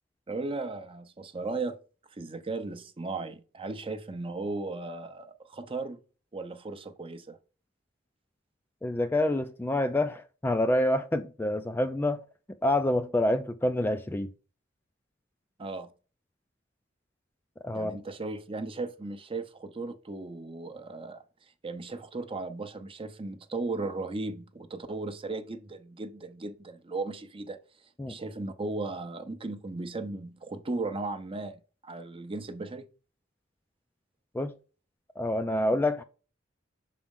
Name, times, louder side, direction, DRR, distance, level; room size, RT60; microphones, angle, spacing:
voice 1, 0.3-1.8 2.1-6.0 6.3-7.4 15.6-15.9 17.7-21.2 21.6-27.6 28.1-32.9, right 3 dB, 30° right, 0.6 m, -36 dB
voice 2, 8.8-12.2 12.6-14.3 17.6-18.0 28.0-28.2 34.3-34.5 35.2-36.0, left 1 dB, 10° left, 0.3 m, -27 dB
6.2 x 4.2 x 3.6 m
head